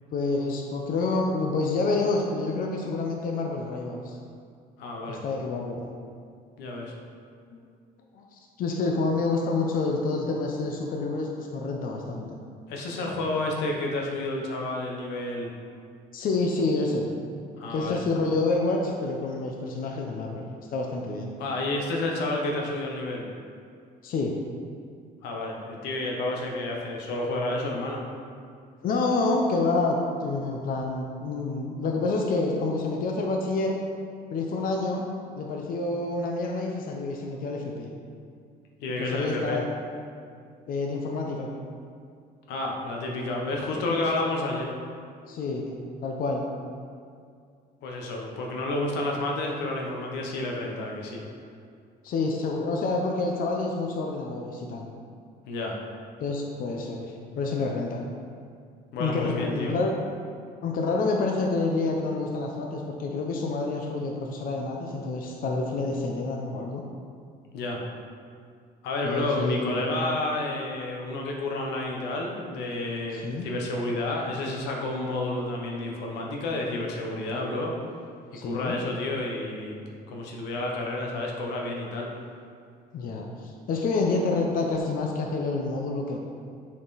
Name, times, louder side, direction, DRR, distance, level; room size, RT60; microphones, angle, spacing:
voice 1, 0.1-4.2 5.1-5.8 7.5-7.6 8.1-12.4 16.1-17.0 17.7-21.3 24.0-24.3 28.8-33.8 34.3-35.0 35.4-37.9 39.0-39.7 40.7-41.5 45.3-45.8 46.0-46.5 52.0-54.9 56.2-58.0 59.0-59.9 60.6-66.8 69.0-69.8 73.1-73.5 78.3-78.8 82.9-86.2, left 3 dB, 55° left, 0 dB, 0.8 m, -28 dB
voice 2, 4.8-5.2 6.6-6.9 12.7-15.5 17.6-18.0 21.4-23.2 25.2-28.0 38.8-39.6 42.5-44.7 47.8-51.2 55.5-55.8 58.9-59.7 67.5-67.8 68.8-77.7 78.4-79.8 80.1-82.1, left 2 dB, 90° left, 0 dB, 1.1 m, -30 dB
7.3 x 4.3 x 4.1 m, 2.3 s
cardioid pair, 110°, 17 cm